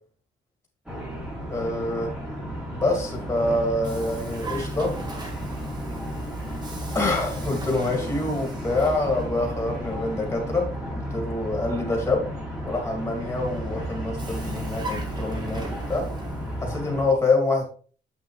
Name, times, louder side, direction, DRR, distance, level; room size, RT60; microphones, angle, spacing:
sound 1, 0.9-17.1, equal, 5° right, 2.5 m, -34 dB
voice 1, 1.5-2.1 2.7-4.9 6.9-12.3 12.6-16.1 16.6-17.6, left 2 dB, 15° left, 1 dB, 2.3 m, -26 dB
Vehicle, 2.7-11.2 12.9-16.8, right 3 dB, 25° right, 1.5 m, -38 dB
8.0 x 6.0 x 3.2 m, 0.40 s
cardioid pair, 170°, 17 cm